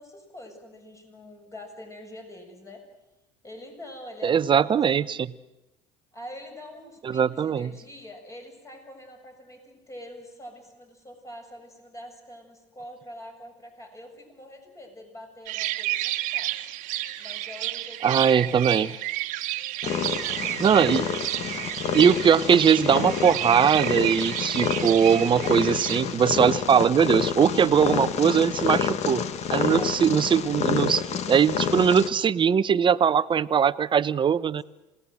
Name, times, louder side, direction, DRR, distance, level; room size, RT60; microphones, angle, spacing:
voice 1, 0.0-2.8 3.4-5.1 6.1-16.5 17.2-19.0 19.8-20.8 29.5-29.9, left 1 dB, 20° left, 4 dB, 7.2 m, -45 dB
voice 2, 4.2-5.3 7.0-7.7 18.0-18.9 20.6-21.1 21.9-29.2 29.5-34.6, right 7 dB, 35° right, 16 dB, 0.9 m, -21 dB
sound 1, 15.5-26.0, right 16 dB, 65° right, 1.4 m, -31 dB
Purr, 19.8-32.1, left 7 dB, 50° left, 1.7 m, -29 dB
27.5 x 18.5 x 7.8 m, 1.0 s
hypercardioid pair, 80°, 15 cm